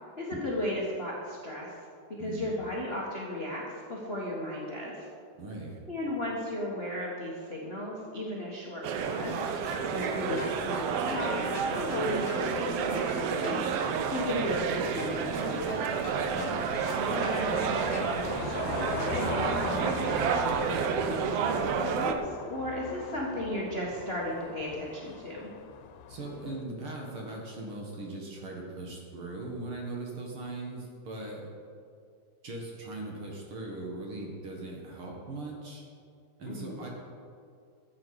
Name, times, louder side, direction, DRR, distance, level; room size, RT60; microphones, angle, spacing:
voice 1, 0.2-1.7 2.1-5.1 5.9-13.6 14.1-15.9 17.1-25.5 36.4-36.8, left 1 dB, 45° left, -4 dB, 0.8 m, -35 dB
voice 2, 2.2-2.6 5.4-5.8 16.3-17.0 26.1-31.5 32.4-35.8 36.4-36.9, right 2 dB, 50° right, -1 dB, 2.0 m, -40 dB
sound 1, 8.8-22.1, right 6 dB, 85° right, 1.3 m, -30 dB
sound 2, 9.7-18.0, left 2 dB, 65° left, 2.5 m, -44 dB
sound 3, 10.2-26.6, left 8 dB, 90° left, 2.3 m, -42 dB
14.5 x 8.4 x 4.8 m, 2.4 s
omnidirectional pair, 3.7 m